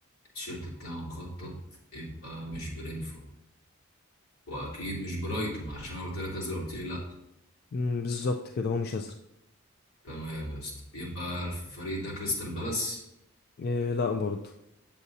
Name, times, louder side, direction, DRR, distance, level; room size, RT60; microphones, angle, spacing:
voice 1, 0.3-1.6 1.9-3.2 4.5-7.0 10.0-13.0, equal, 80° left, -5 dB, 3.0 m, -35 dB
voice 2, 7.7-9.1 13.6-14.4, left 4 dB, 45° left, 5 dB, 0.3 m, -29 dB
8.1 x 7.2 x 2.7 m, 0.86 s
head